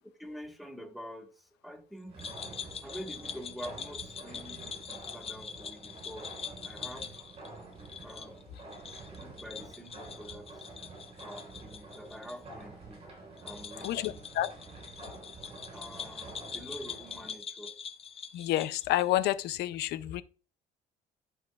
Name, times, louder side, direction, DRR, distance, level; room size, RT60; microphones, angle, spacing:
voice 1, 0.2-2.2 2.8-4.9 5.1-6.3 6.6-7.1 8.0-8.4 9.1-10.7 11.2-13.0 13.4-14.2 15.7-17.7, equal, ahead, 1.5 m, -46 dB
sound 1, 2.1-17.4, right 3 dB, 35° right, 4.3 m, -48 dB
sound 2, 2.2-12.4 12.6-12.7 13.4-19.1, left 6 dB, 35° left, 0.7 m, -44 dB
voice 2, 13.8-14.5 18.3-20.2, left 14 dB, 80° left, 0.6 m, -29 dB
10.5 x 5.3 x 2.4 m
cardioid pair, 110°, 17 cm